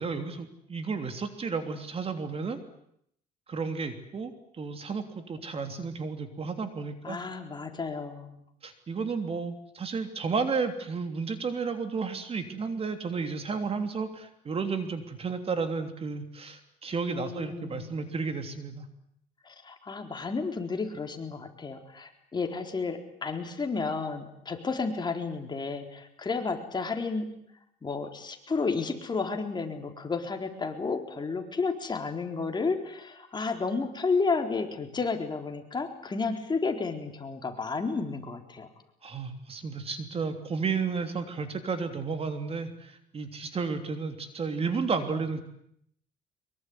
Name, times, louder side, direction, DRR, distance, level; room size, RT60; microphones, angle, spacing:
voice 1, 0.0-2.6 3.5-4.3 4.6-7.2 8.6-18.9 39.0-45.4, right 5 dB, 35° right, 8 dB, 3.2 m, -32 dB
voice 2, 7.0-8.4 17.1-17.9 19.4-27.3 27.8-38.7, left 4 dB, 25° left, 5 dB, 4.1 m, -32 dB
24.0 x 23.0 x 9.7 m, 0.73 s
cardioid pair, 110°, 17 cm